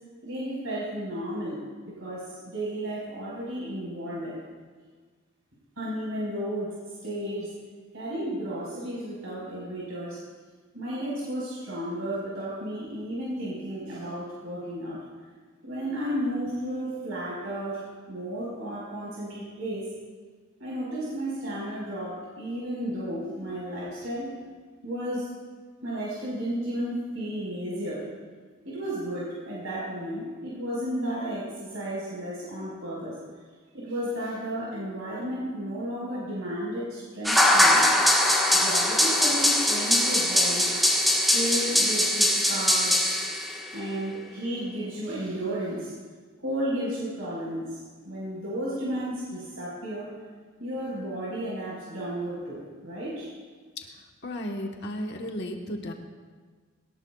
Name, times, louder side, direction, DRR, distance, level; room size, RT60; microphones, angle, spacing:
voice 1, 0.2-1.6 2.0-4.4 5.8-6.7 7.0-7.5 7.9-10.2 10.7-15.0 15.6-19.9 20.6-24.3 24.8-25.3 25.8-28.0 28.6-33.2 33.7-37.9 38.5-40.7 41.3-43.1 43.7-45.9 46.4-47.8 48.0-50.1 50.6-53.3, right 1 dB, 80° right, -6 dB, 4.8 m, -33 dB
sound 1, 37.2-43.6, left 1 dB, ahead, 1.4 m, -22 dB
voice 2, 54.2-55.9, equal, 55° left, 2 dB, 1.2 m, -34 dB
21.5 x 18.5 x 2.4 m, 1.5 s
head